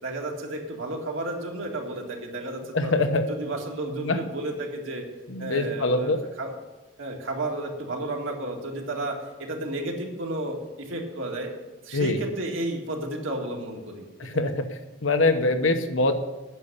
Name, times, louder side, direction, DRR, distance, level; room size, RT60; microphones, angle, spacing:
voice 1, 0.0-2.9 3.3-5.0 5.4-6.1 6.4-6.6 7.0-11.5 11.8-14.0, right 1 dB, 85° right, 0 dB, 2.1 m, -32 dB
voice 2, 2.7-3.3 3.9-4.2 5.3-6.2 11.9-12.2 14.2-14.6 15.0-16.1, left 2 dB, 85° left, 8 dB, 1.0 m, -24 dB
9.3 x 6.7 x 8.6 m, 1.1 s
head